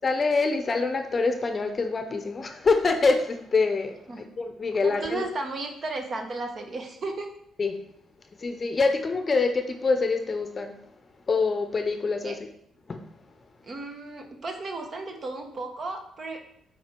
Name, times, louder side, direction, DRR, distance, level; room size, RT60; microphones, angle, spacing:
voice 1, 0.0-3.9 4.4-5.2 7.6-7.8 8.4-10.7 11.3-12.3 12.9-13.0, left 4 dB, 35° left, 6 dB, 0.7 m, -25 dB
voice 2, 4.8-7.3 12.2-12.3 13.6-16.5, right 2 dB, 45° right, 4 dB, 1.3 m, -34 dB
7.4 x 4.4 x 4.5 m, 0.73 s
cardioid pair, 90°, 0 cm